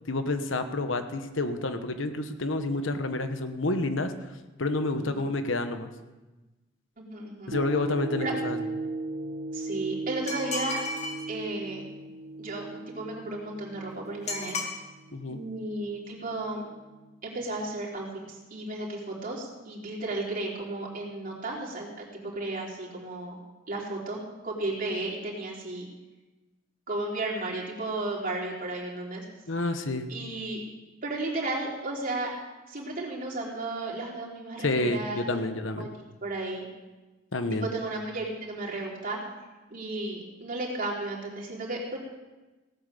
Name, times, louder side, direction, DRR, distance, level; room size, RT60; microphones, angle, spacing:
voice 1, 0.1-4.3 4.6-5.9 7.5-8.6 15.1-15.4 29.5-30.1 34.6-35.9 37.3-37.7, left 2 dB, 70° left, 8 dB, 1.1 m, -29 dB
voice 2, 4.9-5.3 7.0-7.5 8.2-8.3 9.5-10.8 11.3-11.8 12.4-14.6 15.3-16.7 17.2-21.9 22.1-23.4 23.7-24.2 24.4-25.9 26.9-29.2 30.1-30.6 31.0-32.3 32.7-35.4 35.8-35.9 36.2-36.7 37.5-39.2 39.7-42.0, right 2 dB, 45° right, -3 dB, 3.7 m, -34 dB
sound 1, 7.5-15.9 16.4-16.5, right 2 dB, 85° right, 1.2 m, -37 dB
sound 2, 10.3-11.3 14.3-14.7, left 3 dB, 35° left, 2.2 m, -33 dB
17.0 x 9.1 x 6.9 m, 1.1 s
head